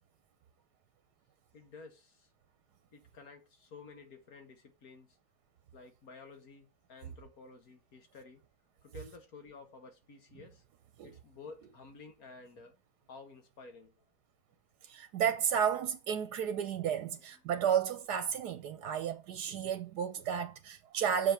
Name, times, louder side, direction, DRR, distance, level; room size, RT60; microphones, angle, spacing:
voice 1, 1.5-2.3 2.9-5.2 5.7-8.4 8.8-10.6 11.0-12.7 13.1-14.0 17.1-17.2, left 4 dB, 65° left, 2.0 m, -52 dB
voice 2, 14.9-21.3, right 8 dB, 90° right, 1.4 m, -32 dB
6.7 x 5.3 x 5.9 m
omnidirectional pair, 1.7 m